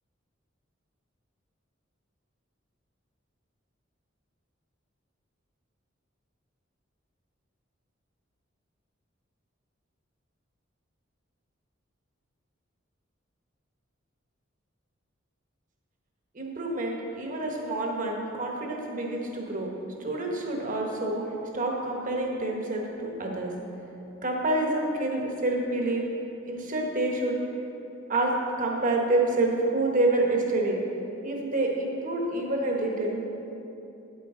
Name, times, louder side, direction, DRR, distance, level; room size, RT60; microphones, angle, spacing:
voice 1, 16.3-23.5 24.2-26.1 26.4-27.4 28.1-30.8 31.2-33.2, right 2 dB, 45° right, 0 dB, 1.2 m, -28 dB
9.2 x 8.4 x 3.8 m, 2.9 s
head